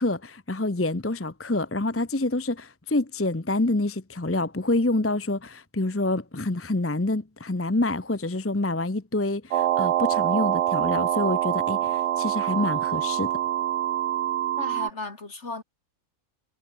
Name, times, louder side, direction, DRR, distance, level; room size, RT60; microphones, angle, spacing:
voice 1, 0.0-13.3, left 2 dB, 10° left, 0.7 m, -27 dB
sound 1, 9.5-14.9, right 12 dB, 65° right, 0.8 m, -25 dB
voice 2, 14.6-15.6, left 3 dB, 50° left, 3.4 m, -35 dB
omnidirectional pair, 1.5 m